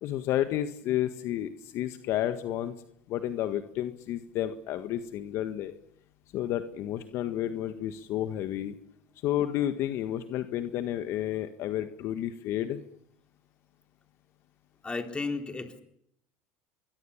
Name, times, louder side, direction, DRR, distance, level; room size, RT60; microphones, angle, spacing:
voice 1, 0.0-2.7 3.1-5.7 6.3-8.8 9.2-12.8, left 12 dB, 60° left, 9 dB, 1.6 m, -31 dB
voice 2, 14.8-15.8, left 3 dB, 20° left, 5 dB, 3.9 m, -33 dB
25.5 x 23.0 x 7.3 m, 0.73 s
supercardioid pair, 95°, 5 cm